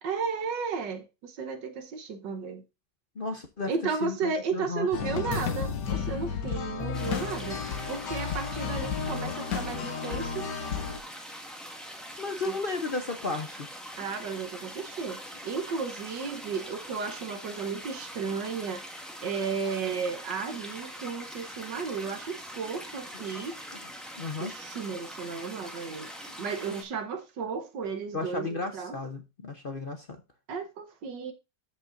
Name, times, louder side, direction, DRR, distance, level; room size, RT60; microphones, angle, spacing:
voice 1, 0.0-2.6 3.7-10.5 12.5-12.6 14.0-18.8 19.2-23.6 24.4-26.1 26.4-29.0 30.5-31.3, right 5 dB, 80° right, 1.7 m, -34 dB
voice 2, 3.2-3.7 4.0-5.4 12.2-13.7 23.1-23.6 24.1-24.5 28.1-30.2, left 3 dB, 45° left, 0.7 m, -34 dB
sound 1, 4.9-11.0, left 6 dB, 75° left, 1.8 m, -32 dB
sound 2, 6.9-26.8, equal, ahead, 1.4 m, -43 dB
13.0 x 5.5 x 2.5 m
omnidirectional pair, 1.9 m